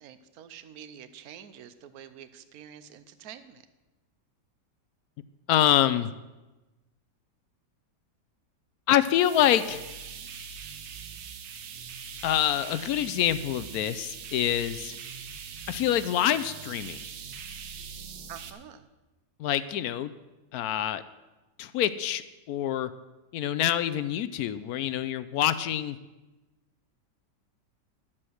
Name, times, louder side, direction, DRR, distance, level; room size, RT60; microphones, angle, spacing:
voice 1, 0.0-3.7 18.3-18.9, right 9 dB, 65° right, 12 dB, 1.1 m, -47 dB
voice 2, 5.5-6.1 8.9-9.8 12.2-15.0 15.7-17.0 19.4-20.1 20.5-21.0 21.6-22.2 22.5-22.9 23.3-26.0, left 11 dB, 70° left, 14 dB, 0.9 m, -26 dB
sound 1, 9.1-18.5, right 6 dB, 90° right, 1.5 m, -42 dB
12.0 x 7.6 x 6.3 m, 1.1 s
omnidirectional pair, 1.8 m